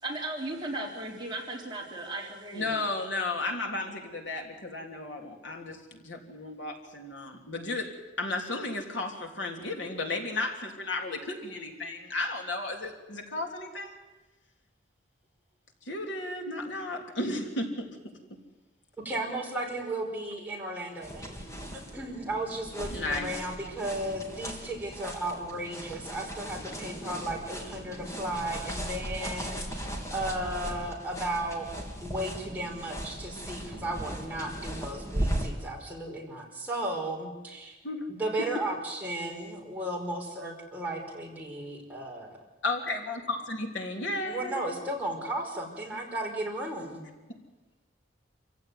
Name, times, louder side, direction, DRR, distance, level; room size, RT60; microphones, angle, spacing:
voice 1, 0.0-2.9, right 2 dB, 25° right, -2 dB, 4.1 m, -36 dB
voice 2, 2.5-7.9 8.2-14.0 15.8-17.9 22.9-23.3 37.8-38.0 42.6-44.7, left 2 dB, 80° left, 2 dB, 3.5 m, -34 dB
voice 3, 19.0-21.5 21.9-29.8 30.1-31.7 32.0-37.8 38.1-42.4 44.3-47.0, right 1 dB, 10° right, -2 dB, 5.0 m, -35 dB
sound 1, 21.0-35.5, right 1 dB, 15° left, 3.1 m, -37 dB
27.0 x 15.5 x 9.6 m, 1.2 s
head